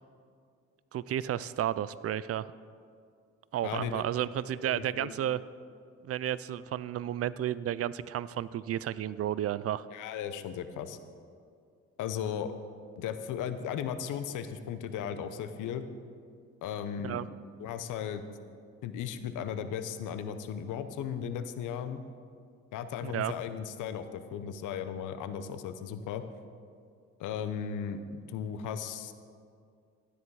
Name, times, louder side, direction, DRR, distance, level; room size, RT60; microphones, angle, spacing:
voice 1, 0.9-2.5 3.5-5.4 6.0-9.9 17.0-17.3 23.0-23.3, right 11 dB, 50° right, 18 dB, 0.4 m, -32 dB
voice 2, 3.6-4.0 4.6-5.1 9.9-11.0 12.0-12.5 13.0-15.9 16.6-17.3 17.6-18.2 18.8-22.0 22.7-26.2 27.2-29.1, left 8 dB, 85° left, 11 dB, 0.8 m, -36 dB
12.5 x 9.8 x 4.7 m, 2.3 s
cardioid pair, 90°, 30 cm